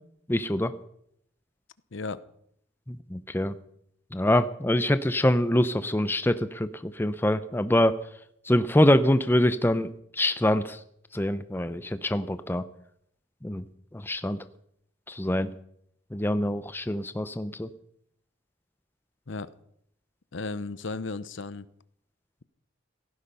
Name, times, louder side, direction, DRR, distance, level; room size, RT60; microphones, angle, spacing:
voice 1, 0.3-0.7 2.9-3.5 4.1-8.0 8.5-10.8 11.1-12.6 13.4-13.6 13.9-14.4 15.1-15.5 16.1-17.7, left 1 dB, 10° left, 12 dB, 0.6 m, -25 dB
voice 2, 20.3-21.7, left 3 dB, 70° left, 16 dB, 0.8 m, -34 dB
17.0 x 14.5 x 5.5 m, 0.72 s
head